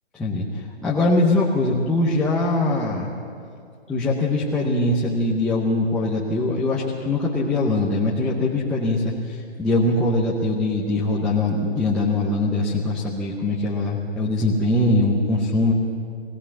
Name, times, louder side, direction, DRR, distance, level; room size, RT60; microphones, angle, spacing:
voice 1, 0.1-3.1 3.9-15.7, left 2 dB, 5° left, -7 dB, 0.7 m, -22 dB
21.5 x 16.5 x 7.2 m, 2.3 s
hypercardioid pair, 155°, 33 cm